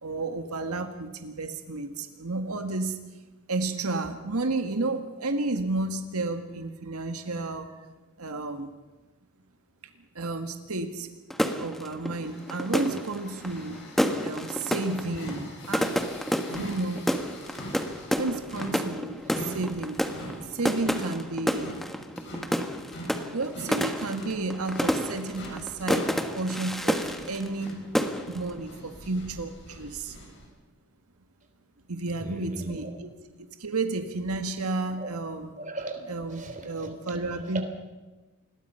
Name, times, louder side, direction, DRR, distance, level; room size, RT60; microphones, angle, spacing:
voice 1, 0.0-3.0 3.5-7.7 8.2-8.7 10.2-11.1 11.6-13.8 14.2-16.0 16.5-17.2 18.2-20.1 20.4-21.7 23.3-27.9 28.3-30.2 31.9-33.1 33.6-35.5 36.1-37.6, right 3 dB, 85° right, 7 dB, 1.7 m, -32 dB
sound 1, 11.3-27.7 28.0-28.5, equal, ahead, 1.4 m, -30 dB
sound 2, 12.2-30.5, equal, 50° left, 6.8 m, -44 dB
voice 2, 19.2-19.6 20.2-20.4 26.3-26.4 32.1-33.0 33.3-33.4 35.0-35.1 35.6-37.6, right 1 dB, 35° right, 6 dB, 3.2 m, -39 dB
28.0 x 21.0 x 5.7 m, 1.2 s
head